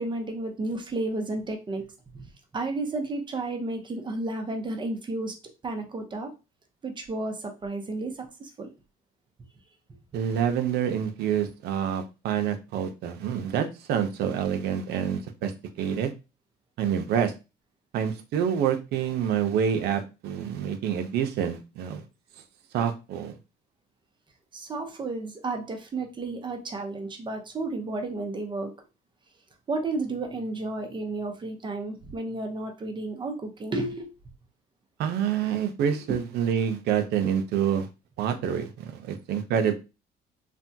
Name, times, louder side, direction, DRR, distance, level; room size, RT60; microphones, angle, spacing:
voice 1, 0.0-1.9 2.1-5.3 5.6-6.3 6.8-8.7 24.5-28.7 29.7-34.1 36.1-36.2, right 2 dB, 30° right, 3 dB, 0.8 m, -32 dB
voice 2, 10.1-15.5 15.8-16.1 16.8-17.3 17.9-22.0 22.7-23.4 35.0-37.9 38.2-39.7, right 8 dB, 75° right, 7 dB, 0.6 m, -27 dB
3.3 x 2.2 x 2.7 m, 0.28 s
cardioid pair, 110°, 17 cm